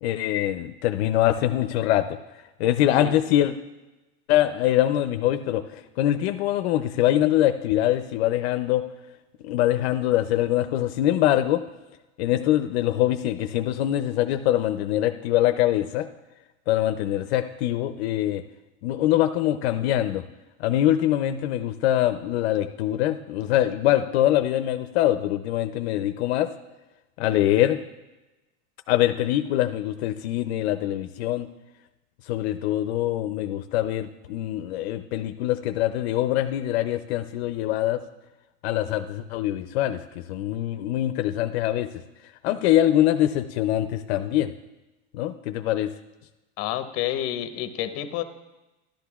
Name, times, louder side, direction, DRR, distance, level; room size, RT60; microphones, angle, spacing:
voice 1, 0.0-2.2 2.6-3.5 4.3-8.8 9.4-11.6 12.2-16.1 16.7-18.4 18.8-20.2 20.6-26.5 27.2-27.8 28.9-31.5 32.3-38.0 38.6-41.9 42.4-44.5 45.1-45.9, left 13 dB, 75° left, 8 dB, 0.5 m, -23 dB
voice 2, 46.6-48.2, left 12 dB, 45° left, 9 dB, 0.8 m, -29 dB
12.0 x 11.5 x 2.3 m, 1.1 s
supercardioid pair, 140°, 32 cm